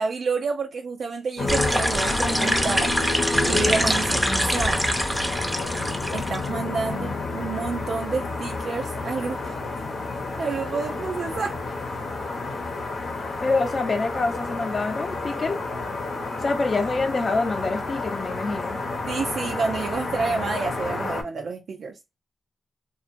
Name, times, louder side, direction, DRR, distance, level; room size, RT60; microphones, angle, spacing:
voice 1, 0.0-2.9 3.4-4.8 6.1-9.6 10.4-11.5 19.1-21.9, right 4 dB, 75° right, 0.4 m, -29 dB
sound 1, 1.4-21.2, left 3 dB, 80° left, 0.8 m, -30 dB
sound 2, 1.5-6.5, equal, 5° right, 0.5 m, -24 dB
voice 2, 13.4-15.6 16.4-18.8, left 3 dB, 45° left, 0.6 m, -26 dB
2.8 x 2.4 x 2.5 m
wide cardioid pair, 105°, 0 cm